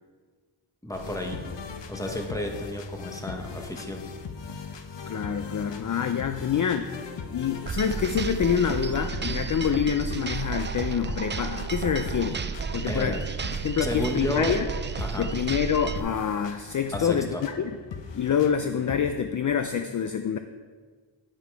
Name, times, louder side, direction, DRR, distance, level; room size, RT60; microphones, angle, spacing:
voice 1, 0.8-1.4 1.9-4.0 12.8-13.2 13.8-14.6 15.0-15.3 16.9-17.4, left 1 dB, 5° left, 2 dB, 1.1 m, -31 dB
sound 1, 0.9-19.2, left 5 dB, 70° left, 0.8 m, -41 dB
voice 2, 5.1-6.9 7.3-13.2 13.4-14.7 15.2-17.7 18.1-20.4, left 7 dB, 45° left, 8 dB, 0.4 m, -26 dB
sound 2, 7.7-16.0, right 6 dB, 25° right, 0.4 m, -32 dB
9.8 x 5.7 x 4.7 m, 1.5 s
wide cardioid pair, 85°, 45 cm